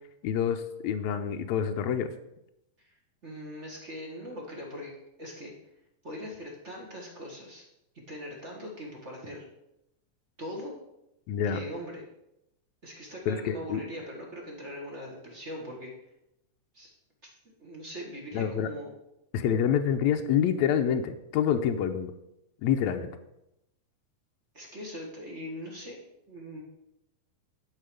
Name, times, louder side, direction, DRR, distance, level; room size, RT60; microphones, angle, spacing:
voice 1, 0.2-2.1 11.3-11.6 13.3-13.8 18.3-18.7 19.3-22.1 22.6-23.1, left 8 dB, 80° left, 6 dB, 1.8 m, -27 dB
voice 2, 3.2-4.9 5.2-5.5 6.0-7.6 8.1-9.4 10.4-10.7 11.5-12.0 12.8-15.9 16.7-16.9 17.2-17.3 17.6-18.9 24.5-26.0 26.3-26.6, equal, 30° right, -1 dB, 1.6 m, -41 dB
11.0 x 5.7 x 5.2 m, 0.84 s
omnidirectional pair, 3.6 m